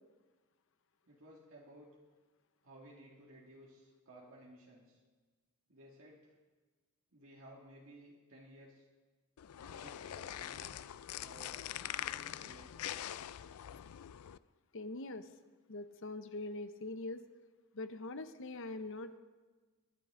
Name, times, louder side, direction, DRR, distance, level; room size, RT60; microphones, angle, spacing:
voice 1, 1.1-1.9 2.6-5.0 5.7-6.3 7.1-8.8 9.6-12.7, right 1 dB, 70° right, -4 dB, 2.4 m, -57 dB
sound 1, 9.4-14.4, left 11 dB, 85° left, 0.4 m, -43 dB
voice 2, 14.7-15.2 15.7-17.2 17.7-19.2, left 2 dB, 60° left, 10 dB, 0.8 m, -43 dB
22.5 x 11.0 x 3.8 m, 1.3 s
head